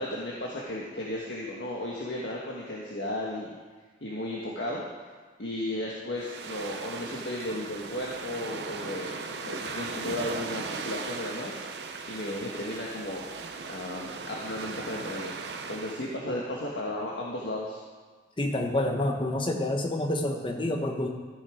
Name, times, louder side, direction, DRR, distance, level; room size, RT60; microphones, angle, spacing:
voice 1, 0.0-3.5 4.0-4.8 5.4-13.2 13.7-17.8, left 1 dB, 80° left, -3 dB, 1.4 m, -35 dB
sound 1, 6.2-16.2, right 4 dB, 70° right, 0.8 m, -38 dB
voice 2, 18.4-21.1, left 1 dB, 30° left, 3 dB, 1.1 m, -28 dB
13.5 x 6.7 x 5.0 m, 1.5 s
head